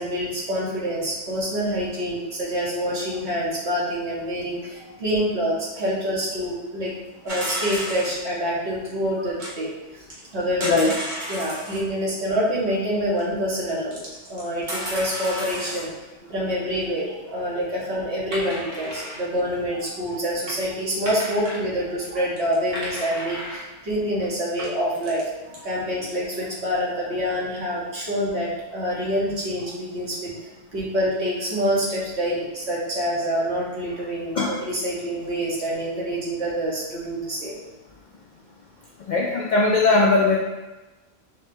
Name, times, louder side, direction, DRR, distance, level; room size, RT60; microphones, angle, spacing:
voice 1, 0.0-6.9 7.2-10.0 10.3-10.8 11.3-14.0 14.3-15.9 16.2-37.5, equal, 65° right, -6 dB, 1.5 m, -26 dB
sound 1, 7.3-8.2 9.4-9.5 10.1-11.8 13.2-13.3 13.9-15.9 18.3-19.3 20.1-20.2 20.5-20.6 21.1-21.6 22.0-22.1 22.4-23.6 24.2-24.3 24.6-25.2 25.5-25.6, equal, 40° right, 1.1 m, -33 dB
voice 2, 10.6-10.9 34.4-34.5 39.1-40.4, left 3 dB, 65° left, -2 dB, 0.4 m, -19 dB
4.7 x 3.3 x 2.7 m, 1.1 s
omnidirectional pair, 1.3 m